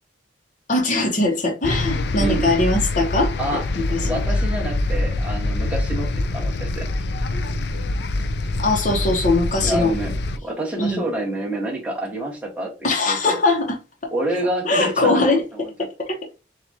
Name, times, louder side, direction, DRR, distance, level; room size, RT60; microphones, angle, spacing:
voice 1, 0.7-3.3 3.8-4.2 8.6-9.9 10.8-11.0 12.8-13.8 14.6-15.4 15.8-16.4, left 2 dB, 40° left, 0.9 m, -21 dB
sound 1, 1.6-10.4, left 2 dB, 60° left, 0.4 m, -24 dB
voice 2, 3.4-6.9 9.6-10.1 10.4-12.7 13.1-13.4 14.1-15.7, right 1 dB, 5° right, 1.4 m, -28 dB
7.0 x 2.5 x 2.8 m
head